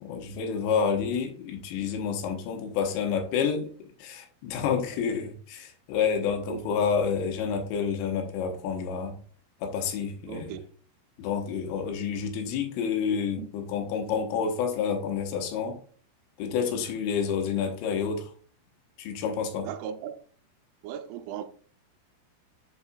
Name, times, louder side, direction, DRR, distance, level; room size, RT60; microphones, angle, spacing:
voice 1, 0.0-3.7 4.0-9.2 9.6-10.5 11.2-15.8 16.4-18.3 19.0-19.7, left 6 dB, 85° left, 3.5 m, -29 dB
voice 2, 6.5-6.9 10.3-10.6 13.4-13.5 19.6-20.2 20.8-21.5, right 9 dB, 80° right, 2.8 m, -37 dB
7.3 x 5.4 x 2.4 m
omnidirectional pair, 6.0 m